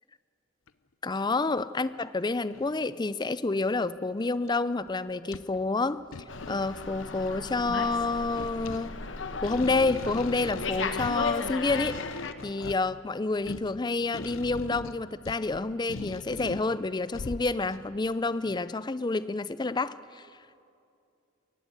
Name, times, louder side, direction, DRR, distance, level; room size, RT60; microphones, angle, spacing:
sound 1, 0.7-0.8 1.4-1.5 2.5-2.9 3.6-4.0 4.5-4.6 4.9-5.7 6.0-7.5 8.1-17.9 18.4-18.6, left 3 dB, 85° left, 0.7 m, -41 dB
voice 1, 1.0-6.0 6.5-9.0 9.4-12.0 12.4-20.3, left 3 dB, 20° left, 16 dB, 0.5 m, -29 dB
Slam, 6.3-12.3, left 4 dB, 65° left, 1.2 m, -35 dB
23.0 x 18.0 x 8.1 m, 2.5 s
head